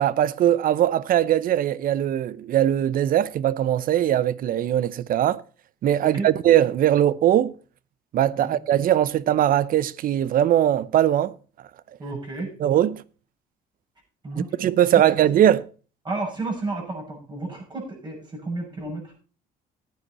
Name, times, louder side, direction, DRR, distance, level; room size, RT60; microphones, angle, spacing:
voice 1, 0.0-5.4 5.8-7.5 8.1-11.3 12.6-13.0 14.4-15.6, right 11 dB, 55° right, 0.7 m, -20 dB
voice 2, 12.0-12.5 14.2-14.5 14.9-15.0 16.0-19.1, right 2 dB, 25° right, 6.7 m, -32 dB
14.0 x 9.6 x 4.2 m
cardioid pair, 110°, 17 cm